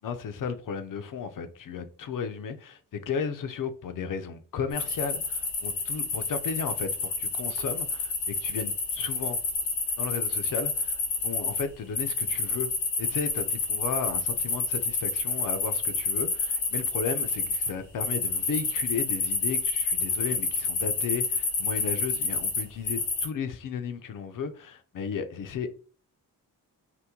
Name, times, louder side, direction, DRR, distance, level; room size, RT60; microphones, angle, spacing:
voice 1, 0.0-9.4 10.0-12.7 13.0-25.7, left 6 dB, 55° left, 0.6 m, -34 dB
sound 1, 4.7-11.6 11.9-17.7 18.0-23.2, left 4 dB, 85° left, 1.2 m, -28 dB
2.9 x 2.2 x 3.6 m
cardioid pair, 65°, 38 cm